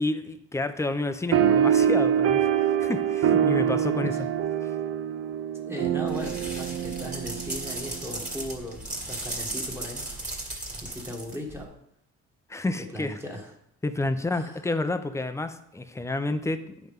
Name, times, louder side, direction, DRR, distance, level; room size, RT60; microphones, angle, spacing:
voice 1, 0.0-4.1 4.6-4.7 12.5-13.2 13.8-16.8, left 2 dB, 10° left, 10 dB, 0.6 m, -30 dB
sound 1, 1.3-8.2, right 9 dB, 55° right, 0.5 m, -25 dB
voice 2, 5.7-10.1 10.8-11.8 12.9-13.5 14.3-14.6, left 1 dB, 10° right, 1 dB, 1.4 m, -37 dB
sound 2, 6.1-11.6, right 2 dB, 25° right, 2.0 m, -36 dB
9.2 x 5.7 x 3.6 m, 0.75 s
cardioid pair, 90°, 30 cm